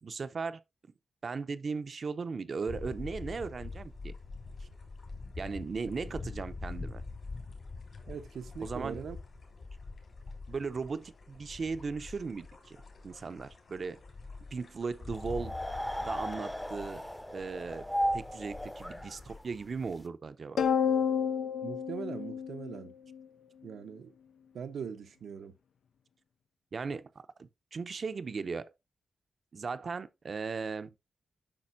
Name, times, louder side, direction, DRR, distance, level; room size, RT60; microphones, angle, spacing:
voice 1, 0.0-0.6 1.2-4.1 5.4-7.0 8.6-9.0 10.5-12.8 13.0-14.0 14.5-15.6 16.0-17.0 17.3-17.9 18.1-20.6 26.7-27.1 27.4-28.7 29.5-30.9, right 4 dB, 50° right, 0.6 m, -37 dB
sound 1, 2.7-19.4, left 3 dB, 60° left, 2.7 m, -45 dB
voice 2, 8.1-9.2 21.6-22.9 23.6-24.1 24.5-25.5, right 7 dB, 90° right, 0.8 m, -41 dB
sound 2, 15.1-20.0, equal, 5° left, 0.7 m, -36 dB
sound 3, 20.6-23.2, left 7 dB, 85° left, 0.4 m, -30 dB
8.7 x 5.8 x 2.6 m
wide cardioid pair, 95°, 0 cm